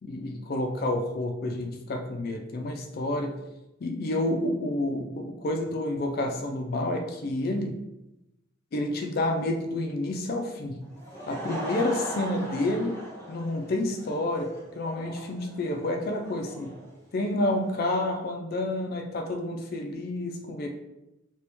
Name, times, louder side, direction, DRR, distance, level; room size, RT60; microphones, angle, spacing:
voice 1, 0.0-3.4 3.8-7.7 8.7-10.8 11.3-13.0 13.3-16.8 17.1-20.7, left 1 dB, 50° left, 3 dB, 0.4 m, -29 dB
Laughter / Crowd, 10.8-17.8, equal, 15° right, 1.0 m, -39 dB
2.9 x 2.9 x 3.4 m, 0.93 s
head